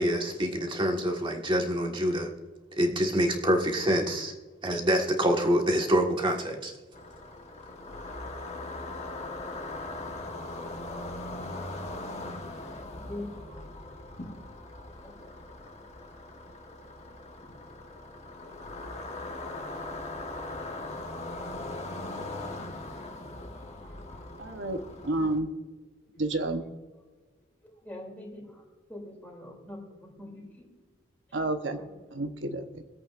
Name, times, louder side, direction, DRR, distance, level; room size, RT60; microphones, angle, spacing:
voice 1, 0.0-2.3 2.8-4.3 4.6-6.7, equal, 25° right, 2 dB, 1.6 m, -26 dB
sound 1, 6.9-25.4, left 2 dB, 35° left, 1.3 m, -40 dB
voice 2, 12.7-13.3 15.0-15.1 19.5-19.9 23.8-24.3 26.1-26.2 27.8-28.6 28.9-30.6 31.7-32.1, left 1 dB, 10° left, -2 dB, 3.0 m, -44 dB
voice 3, 24.4-25.5 26.2-26.6 31.3-31.8 32.1-32.8, right 2 dB, 70° right, 7 dB, 1.0 m, -30 dB
23.5 x 8.4 x 2.5 m, 1.3 s
head